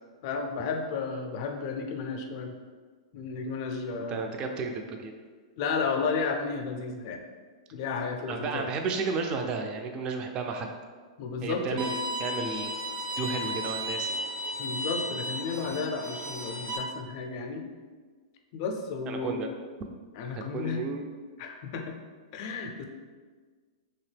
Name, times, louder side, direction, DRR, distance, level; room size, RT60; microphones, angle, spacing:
voice 1, 0.2-2.5 3.1-4.2 5.6-7.2 7.7-8.7 9.1-9.2 11.2-11.8 14.6-17.6 18.5-19.5 20.1-20.8 21.4-21.9 22.3-22.8, left 5 dB, 50° left, 4 dB, 0.4 m, -33 dB
voice 2, 4.1-5.1 8.3-10.7 11.4-12.8 13.2-14.2 19.1-19.5 20.4-21.1, right 4 dB, 30° right, 4 dB, 0.4 m, -33 dB
Bowed string instrument, 11.8-16.8, equal, 75° right, 0.9 m, -34 dB
2.9 x 2.7 x 3.3 m, 1.5 s
hypercardioid pair, 125°, 3 cm